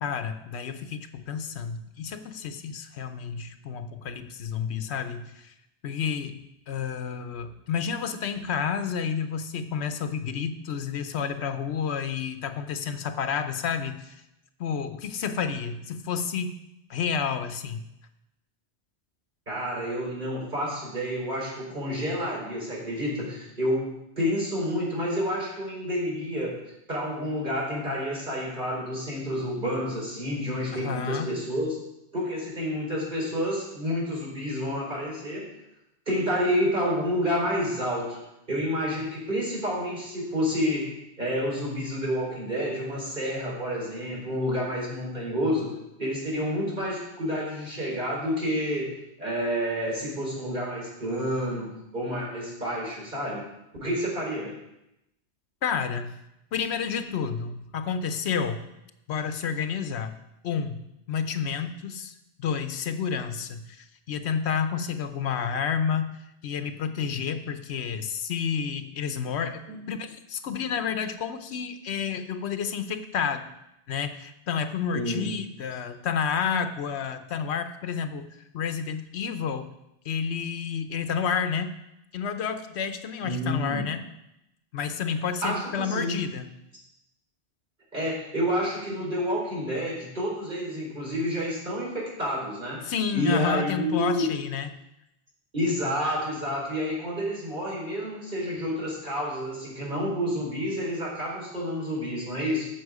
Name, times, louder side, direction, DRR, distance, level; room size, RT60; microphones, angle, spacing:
voice 1, 0.0-5.5 5.8-14.1 14.6-16.6 16.9-17.9 30.7-31.3 55.6-56.2 56.5-58.6 59.1-60.2 60.4-62.1 62.4-73.5 73.9-78.3 78.5-79.7 80.0-81.8 82.1-84.1 84.7-86.5 92.8-94.7, left 7 dB, 75° left, 9 dB, 1.0 m, -30 dB
voice 2, 19.5-26.6 26.9-31.8 32.1-35.5 36.1-38.2 38.5-40.9 41.2-45.7 46.0-48.9 49.2-53.4 53.8-54.5 69.7-69.8 74.9-75.3 83.2-83.8 85.4-86.2 87.9-94.3 95.5-102.7, equal, 45° right, -5 dB, 4.5 m, -29 dB
14.5 x 6.2 x 4.8 m, 0.86 s
omnidirectional pair, 1.1 m